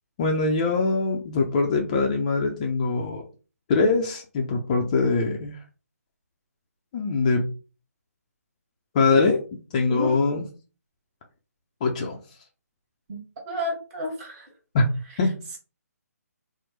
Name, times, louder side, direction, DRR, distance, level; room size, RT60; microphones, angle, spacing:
voice 1, 0.2-3.2 3.7-5.6 6.9-7.5 8.9-10.5 11.8-12.2 14.7-14.8 15.2-15.3, left 3 dB, 25° left, 2 dB, 0.5 m, -23 dB
voice 2, 13.5-14.5, left 1 dB, 25° right, -1 dB, 1.1 m, -30 dB
4.2 x 2.1 x 3.2 m, 0.34 s
figure-of-eight pair, 140°, 9 cm